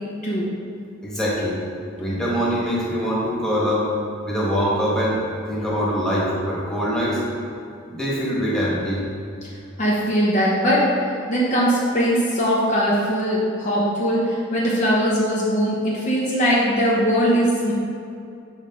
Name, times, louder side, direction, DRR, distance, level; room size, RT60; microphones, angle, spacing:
voice 1, 1.0-1.6 2.0-3.9 4.2-5.2 5.5-7.2 7.9-9.1, equal, 5° left, -7 dB, 1.4 m, -23 dB
voice 2, 9.8-10.9 11.3-17.7, equal, 35° left, -5 dB, 0.8 m, -20 dB
6.4 x 5.1 x 3.7 m, 2.5 s
head